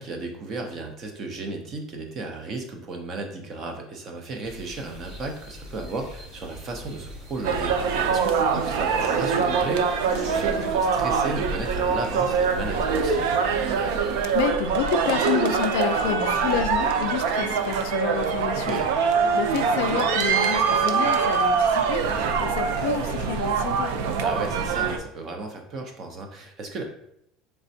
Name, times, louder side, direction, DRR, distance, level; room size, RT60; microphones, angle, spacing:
voice 1, 0.0-13.4 18.7-18.9 24.2-26.8, right 3 dB, 30° right, 3 dB, 0.6 m, -34 dB
sound 1, 4.4-14.5, equal, 65° right, 1.3 m, -43 dB
sound 2, 7.4-25.0, right 5 dB, 85° right, 0.4 m, -24 dB
voice 2, 14.3-18.8 19.3-23.9, left 8 dB, 75° left, 9 dB, 0.3 m, -29 dB
4.2 x 3.2 x 2.7 m, 0.74 s
cardioid pair, 180°, 0 cm